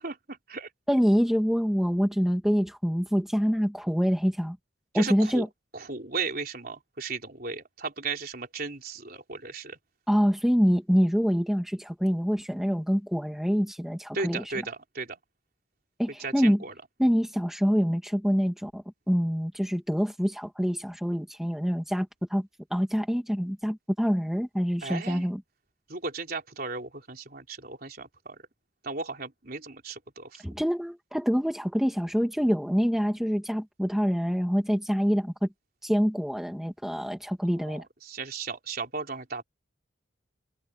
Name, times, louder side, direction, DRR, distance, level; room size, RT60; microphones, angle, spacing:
voice 1, 0.0-0.7 4.9-5.4 5.7-9.8 14.1-15.2 16.2-16.7 24.8-25.3 25.9-28.4 28.8-30.4 37.6-39.4, right 4 dB, 50° right, 4.1 m, -36 dB
voice 2, 0.9-4.6 4.9-5.5 10.1-14.4 16.0-16.6 17.0-25.4 30.4-35.5 35.8-37.8, equal, ahead, 1.9 m, -26 dB
head